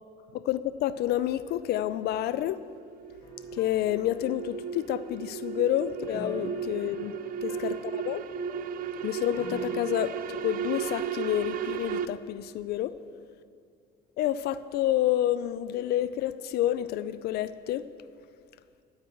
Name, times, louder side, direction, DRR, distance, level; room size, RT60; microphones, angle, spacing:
voice 1, 0.3-2.6 3.5-7.2 7.4-8.2 9.0-12.9 14.2-17.9, left 12 dB, 70° left, 13 dB, 0.4 m, -29 dB
sound 1, 1.5-12.1, right 8 dB, 55° right, 0.5 m, -35 dB
sound 2, 3.2-4.7 6.1-9.7, left 2 dB, 20° left, 1.2 m, -45 dB
13.5 x 4.7 x 8.7 m, 2.2 s
cardioid pair, 110°, 17 cm